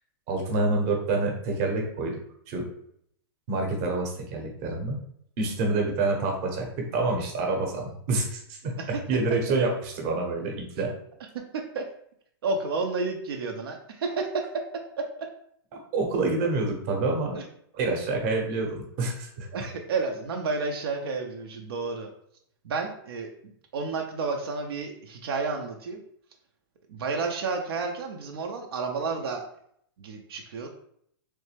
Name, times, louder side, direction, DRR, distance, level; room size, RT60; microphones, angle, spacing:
voice 1, 0.3-2.2 2.5-2.6 3.5-5.0 5.4-6.7 6.9-8.8 9.1-10.9 15.9-17.4 17.7-19.5, right 3 dB, 35° right, 1 dB, 0.9 m, -27 dB
voice 2, 11.3-11.9 12.4-14.7 15.0-15.3 17.3-17.4 19.5-22.1 22.6-26.0 26.9-29.5 30.0-30.7, right 4 dB, 75° right, 2 dB, 0.6 m, -31 dB
3.4 x 3.2 x 3.2 m, 0.67 s
hypercardioid pair, 160°, 13 cm